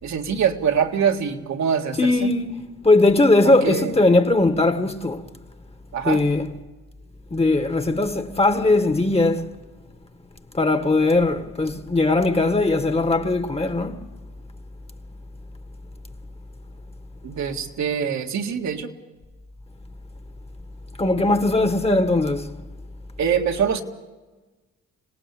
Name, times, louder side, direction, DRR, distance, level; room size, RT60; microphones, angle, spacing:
voice 1, 0.0-2.3 3.4-3.9 5.9-6.2 17.2-18.9 23.2-23.8, right 7 dB, 65° right, 2.2 m, -24 dB
voice 2, 2.0-2.5 2.8-5.2 6.0-6.5 7.3-9.4 10.5-14.0 21.0-22.5, left 2 dB, 20° left, 1.7 m, -19 dB
26.0 x 18.0 x 8.5 m
cardioid pair, 90°, 30 cm